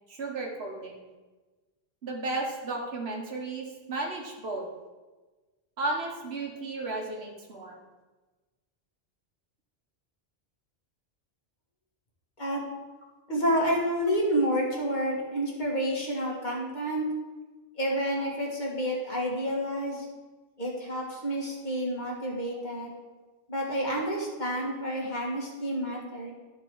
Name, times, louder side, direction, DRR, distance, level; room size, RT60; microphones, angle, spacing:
voice 1, 0.1-1.0 2.0-4.7 5.8-7.8 15.0-15.1 16.3-16.4 22.9-23.0, right 2 dB, 80° right, 1 dB, 1.6 m, -34 dB
voice 2, 13.3-17.0 17.8-20.1 20.6-22.9 23.5-26.3, equal, 45° left, -2 dB, 1.8 m, -29 dB
11.5 x 4.4 x 4.6 m, 1.2 s
omnidirectional pair, 1.1 m